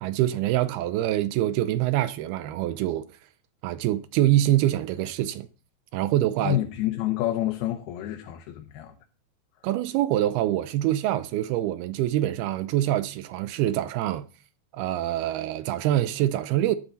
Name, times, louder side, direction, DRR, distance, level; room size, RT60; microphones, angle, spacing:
voice 1, 0.0-3.0 3.6-5.5 5.9-6.6 9.6-14.3 14.7-16.8, right 13 dB, 80° right, 2.6 m, -25 dB
voice 2, 6.4-9.0, left 13 dB, 80° left, 3.1 m, -28 dB
13.0 x 12.0 x 4.1 m
omnidirectional pair, 4.5 m